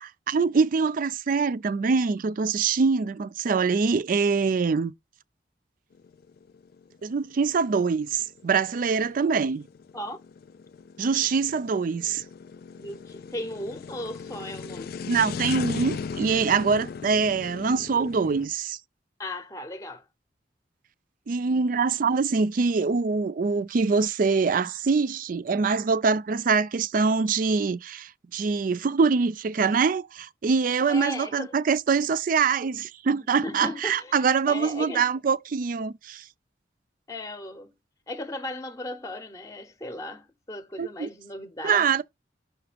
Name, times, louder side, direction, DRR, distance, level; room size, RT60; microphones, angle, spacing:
voice 1, 0.0-4.9 7.0-9.7 11.0-12.2 15.1-18.8 21.3-36.2 40.8-41.1 41.6-42.0, right 5 dB, 50° right, 0.4 m, -24 dB
sound 1, 6.0-18.5, left 5 dB, 55° left, 0.4 m, -38 dB
voice 2, 12.8-15.0 19.2-20.0 30.9-31.6 33.4-35.1 37.1-37.7 38.1-42.0, left 1 dB, 20° left, 0.7 m, -36 dB
6.0 x 3.1 x 5.0 m
head